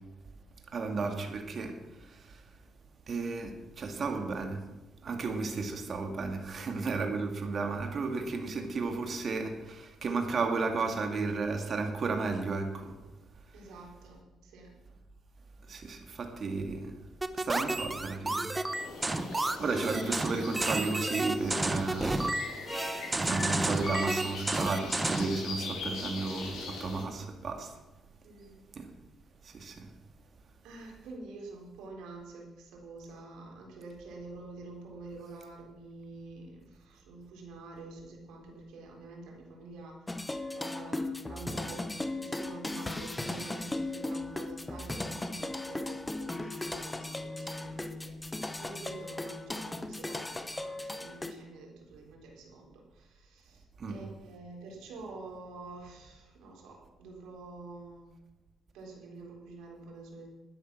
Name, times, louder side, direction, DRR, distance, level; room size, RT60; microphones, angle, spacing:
voice 1, 0.7-2.4 3.1-4.6 5.0-13.0 15.7-16.9 17.3-18.5 19.6-22.2 23.1-27.7 28.7-28.9 29.4-29.9 53.8-54.0, right 4 dB, 50° right, 4 dB, 2.4 m, -33 dB
voice 2, 13.5-14.7 28.2-28.6 30.6-40.2 40.5-58.0 58.7-60.3, right 3 dB, 90° right, 0 dB, 4.0 m, -48 dB
sound 1, 17.2-25.4, right 2 dB, 15° right, 0.9 m, -31 dB
sound 2, 18.7-27.0, left 3 dB, 85° left, 5.0 m, -41 dB
sound 3, 40.1-51.3, left 2 dB, 15° left, 1.1 m, -37 dB
12.5 x 10.0 x 6.2 m, 1.0 s
cardioid pair, 90°, 0 cm